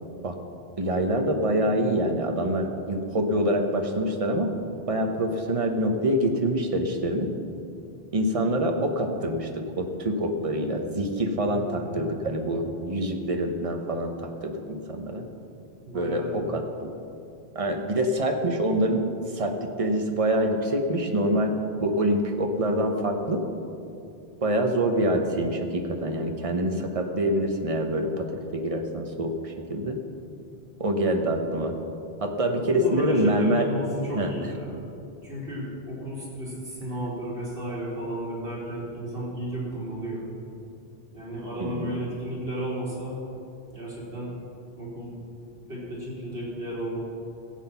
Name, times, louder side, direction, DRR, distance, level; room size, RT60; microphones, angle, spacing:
voice 1, 0.8-4.5 4.9-7.3 8.1-9.5 9.8-15.2 15.9-16.9 17.5-21.5 21.8-23.4 24.4-28.3 28.5-30.0 30.8-31.7 32.2-33.7 34.2-34.3 41.6-42.0, right 1 dB, 35° right, 4 dB, 1.1 m, -26 dB
voice 2, 11.4-12.0 15.8-16.5 32.7-34.8 35.2-40.3 41.1-43.2 43.7-44.3 44.8-45.2 45.7-47.0, equal, 65° right, -6 dB, 3.7 m, -33 dB
16.0 x 8.1 x 5.7 m, 2.6 s
omnidirectional pair, 1.1 m